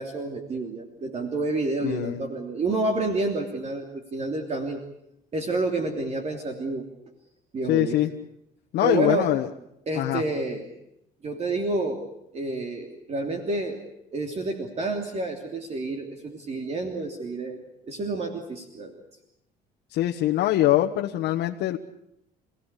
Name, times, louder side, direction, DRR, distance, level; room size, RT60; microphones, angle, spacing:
voice 1, 0.0-4.8 5.3-6.8 7.5-8.0 8.8-9.3 9.9-10.7 11.2-12.0 12.3-13.8 14.1-19.0, right 2 dB, 40° right, 4 dB, 3.1 m, -29 dB
voice 2, 1.8-2.2 7.7-8.1 8.7-9.5 9.9-10.2 19.9-21.8, left 14 dB, 80° left, 2 dB, 1.4 m, -23 dB
29.0 x 17.0 x 8.4 m, 0.81 s
cardioid pair, 110°, 17 cm